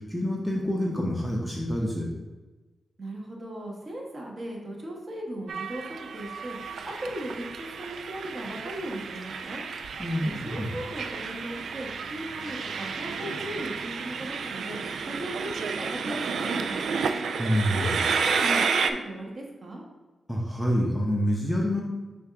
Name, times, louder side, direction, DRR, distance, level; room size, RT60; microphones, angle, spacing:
voice 1, 0.0-2.1 10.0-10.7 17.4-18.0 20.3-21.8, equal, 5° left, -2 dB, 0.7 m, -27 dB
voice 2, 3.0-5.9 6.1-6.6 6.8-9.6 10.2-14.8 15.1-17.0 17.7-19.8, right 1 dB, 35° right, -1 dB, 1.2 m, -37 dB
Train, 5.5-18.9, right 5 dB, 85° right, 0.3 m, -31 dB
6.9 x 2.5 x 5.6 m, 1.2 s
wide cardioid pair, 175°, 0 cm